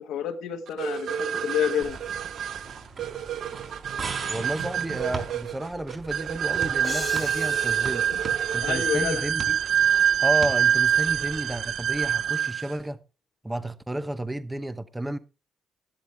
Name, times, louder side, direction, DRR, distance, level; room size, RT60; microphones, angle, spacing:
voice 1, 0.0-2.0 8.1-8.2 8.6-9.2, left 8 dB, 90° left, 1.5 m, -29 dB
sound 1, 0.8-12.7, right 9 dB, 65° right, 0.7 m, -26 dB
sound 2, 1.8-12.3, right 4 dB, 50° right, 4.3 m, -40 dB
voice 2, 4.3-8.1 8.5-9.6 10.2-13.0 13.4-15.2, right 1 dB, 10° right, 0.8 m, -32 dB
sound 3, 6.8-9.5, left 5 dB, 35° left, 0.7 m, -40 dB
12.0 x 11.5 x 3.4 m
cardioid pair, 90°, 0 cm